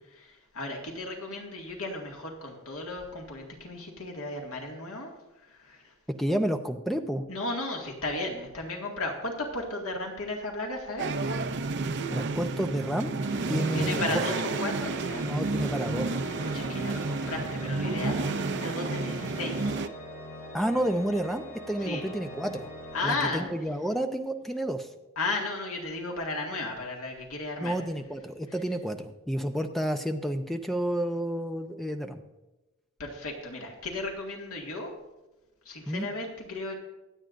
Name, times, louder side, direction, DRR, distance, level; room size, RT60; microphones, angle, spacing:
voice 1, 0.2-5.1 5.4-5.9 7.3-11.1 13.7-15.3 16.4-19.8 21.8-22.0 22.9-23.5 25.2-27.8 33.0-34.9 35.7-36.7, left 2 dB, 75° left, 0 dB, 2.1 m, -34 dB
voice 2, 6.2-7.2 12.1-13.1 13.5-14.2 15.2-16.1 20.5-22.7 23.0-24.9 27.6-32.2 35.9-36.1, right 1 dB, ahead, 6 dB, 0.7 m, -30 dB
sound 1, 11.0-19.9, right 3 dB, 50° right, 0.5 m, -31 dB
Organ, 13.2-24.0, left 1 dB, 45° left, 3.4 m, -43 dB
23.5 x 8.9 x 2.6 m, 1.1 s
head